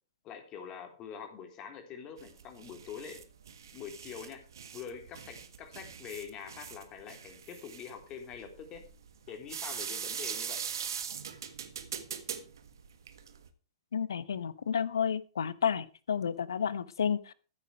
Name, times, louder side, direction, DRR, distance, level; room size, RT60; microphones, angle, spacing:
voice 1, 0.2-3.2 3.7-4.4 4.7-8.8 9.3-10.6, left 7 dB, 30° left, 5 dB, 3.6 m, -45 dB
sound 1, 2.2-13.5, right 8 dB, 70° right, 1.6 m, -42 dB
voice 2, 13.9-17.3, left 7 dB, 70° left, 17 dB, 1.1 m, -31 dB
14.5 x 9.0 x 4.9 m, 0.35 s
figure-of-eight pair, 105°, 2 cm